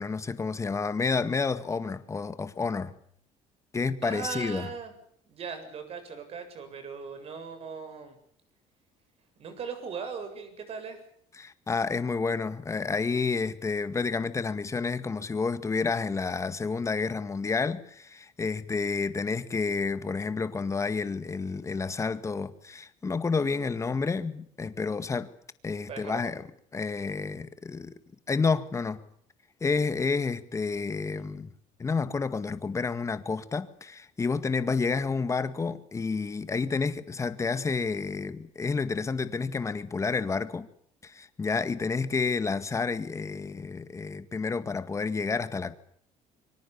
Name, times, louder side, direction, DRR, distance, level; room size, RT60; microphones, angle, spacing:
voice 1, 0.0-2.9 3.7-4.7 11.4-25.3 25.6-26.4 26.7-27.9 28.3-29.0 29.6-31.5 31.8-40.7 41.0-45.8, left 4 dB, 20° left, 1.9 m, -30 dB
voice 2, 4.0-4.9 5.2-8.2 9.4-11.0 25.9-26.3, right 6 dB, 50° right, 7.7 m, -39 dB
25.5 x 24.0 x 7.2 m
cardioid pair, 120°, 13 cm